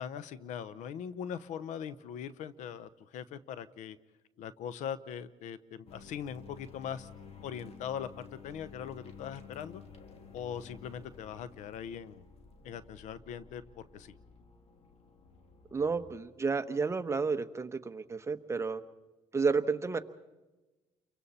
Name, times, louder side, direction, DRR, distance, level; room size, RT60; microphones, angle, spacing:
voice 1, 0.0-4.0 4.4-7.1 7.4-9.8 10.3-12.2 12.6-14.1, left 8 dB, 80° left, 16 dB, 0.9 m, -41 dB
sound 1, 5.9-16.2, left 5 dB, 55° left, 2.5 m, -53 dB
voice 2, 15.7-18.8 19.3-20.0, right 4 dB, 20° right, 9 dB, 1.1 m, -31 dB
29.5 x 24.0 x 4.3 m, 1.1 s
cardioid pair, 100°, 13 cm